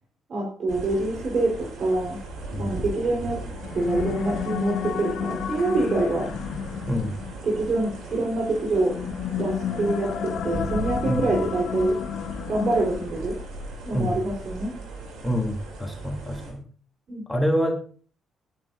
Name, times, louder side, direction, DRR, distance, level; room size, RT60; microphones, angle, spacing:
voice 1, 0.3-2.2 2.6-3.4 3.7-6.3 7.4-9.0 9.4-12.0 12.5-13.4 13.8-14.8 17.1-17.3, right 2 dB, 55° right, -1 dB, 4.3 m, -25 dB
sound 1, 0.7-16.5, right 2 dB, 75° right, 6.4 m, -37 dB
sound 2, 3.5-13.4, left 9 dB, 70° left, 0.8 m, -33 dB
voice 2, 15.2-16.6 17.3-17.7, equal, 10° left, 1 dB, 3.3 m, -26 dB
21.5 x 10.5 x 2.7 m, 0.42 s
cardioid pair, 90°, 0 cm